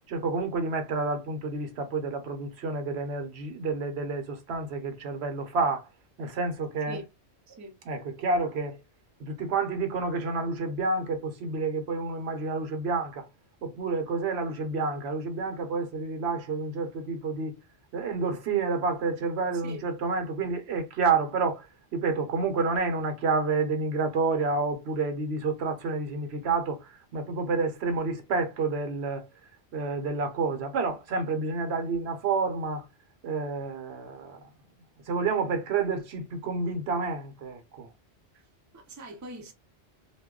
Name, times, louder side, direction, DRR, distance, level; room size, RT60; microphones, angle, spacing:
voice 1, 0.1-5.9 6.2-7.0 7.8-8.8 9.2-13.2 13.6-17.5 17.9-21.7 21.9-29.3 29.7-32.8 33.2-34.4 35.1-37.9, right 4 dB, 75° right, 0.9 m, -29 dB
voice 2, 7.5-7.8 19.6-19.8 38.7-39.5, right 2 dB, 25° right, 0.4 m, -42 dB
2.2 x 2.1 x 3.6 m
omnidirectional pair, 1.1 m